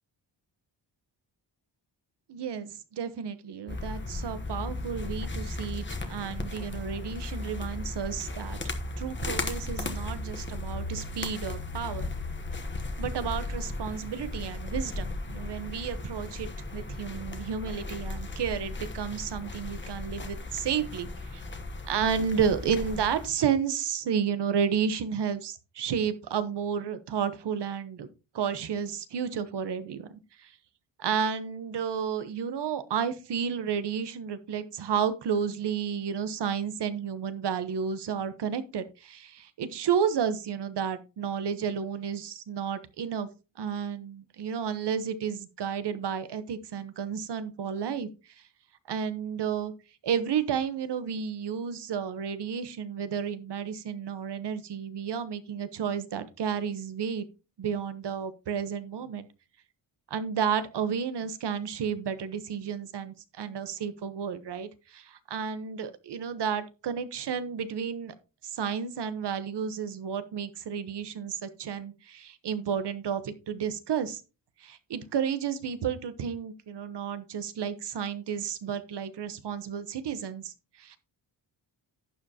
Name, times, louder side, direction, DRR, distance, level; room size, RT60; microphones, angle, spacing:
voice 1, 2.3-8.6 9.0-12.1 13.0-21.4 21.8-28.1 28.3-30.1 30.4-30.5 31.0-43.3 43.6-48.1 48.9-49.7 50.0-57.3 57.6-59.3 60.1-68.1 68.5-74.2 74.6-80.5 80.8-81.0, right 7 dB, 70° right, 12 dB, 1.1 m, -32 dB
sound 1, 3.7-23.3, left 2 dB, 25° left, 1.0 m, -36 dB
11.5 x 7.6 x 2.8 m, 0.31 s
wide cardioid pair, 135°, 43 cm